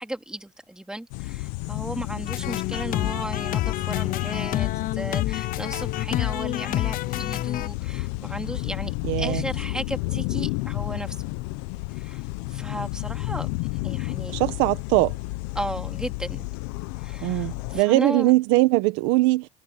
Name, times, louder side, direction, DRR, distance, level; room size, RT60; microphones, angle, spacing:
voice 1, 0.0-8.9 9.2-11.2 11.9-12.2 12.5-14.5 15.5-16.5 17.0-18.3, right 1 dB, 5° right, 2.7 m, -35 dB
sound 1, 1.1-17.8, left 22 dB, 80° left, 0.9 m, -31 dB
sound 2, 2.3-7.7, left 15 dB, 45° left, 0.5 m, -28 dB
voice 2, 9.0-9.4 14.3-15.1 17.2-19.5, right 20 dB, 80° right, 1.6 m, -21 dB
cardioid pair, 125°, 19 cm